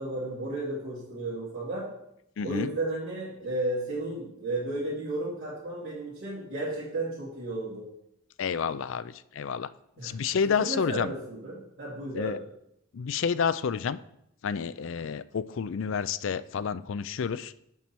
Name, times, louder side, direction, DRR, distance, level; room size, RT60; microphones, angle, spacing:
voice 1, 0.0-1.9 2.4-7.8 10.0-10.1 10.6-12.4, right 2 dB, 50° right, -11 dB, 2.8 m, -33 dB
voice 2, 2.4-2.7 8.4-9.7 10.0-11.1 12.1-12.4 12.9-14.0 14.4-17.5, left 6 dB, 60° left, 15 dB, 0.4 m, -29 dB
7.3 x 5.5 x 6.0 m, 0.76 s
head